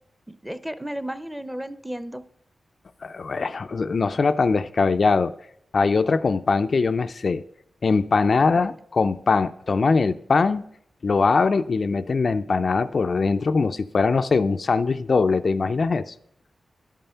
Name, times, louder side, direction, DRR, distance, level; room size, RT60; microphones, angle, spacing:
voice 1, 0.3-2.2 8.6-8.8, equal, 5° right, 0.7 m, -33 dB
voice 2, 3.0-5.3 5.7-7.4 7.8-10.7 11.0-16.1, left 4 dB, 55° left, 0.4 m, -21 dB
11.5 x 5.5 x 5.6 m
cardioid pair, 75°, 0 cm